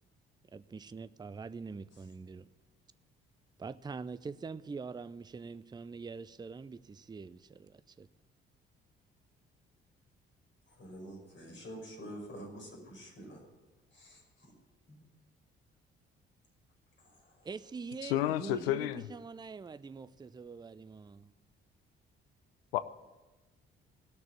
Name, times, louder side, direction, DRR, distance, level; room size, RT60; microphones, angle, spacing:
voice 1, 0.5-2.5 3.6-8.1 17.4-21.3, right 4 dB, 15° right, 0.5 m, -44 dB
voice 2, 10.7-13.5 13.9-14.5 14.9-15.0 17.0-17.5, equal, 40° left, 5.7 m, -48 dB
voice 3, 18.0-19.0 22.7-22.8, left 13 dB, 80° left, 0.6 m, -30 dB
17.5 x 6.7 x 9.6 m
figure-of-eight pair, 45°, 29 cm